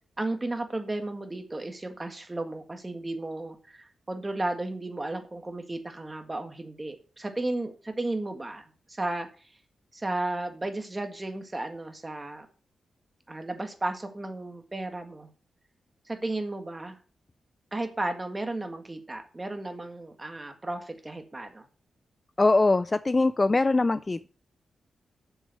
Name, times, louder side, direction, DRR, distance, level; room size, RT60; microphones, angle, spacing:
voice 1, 0.2-9.5 9.9-12.5 13.3-15.3 16.1-17.0 17.7-21.7, right 2 dB, 20° right, 6 dB, 1.8 m, -34 dB
voice 2, 22.4-24.3, left 3 dB, 30° left, 15 dB, 0.4 m, -22 dB
7.2 x 7.1 x 6.5 m, 0.38 s
cardioid pair, 90°, 0 cm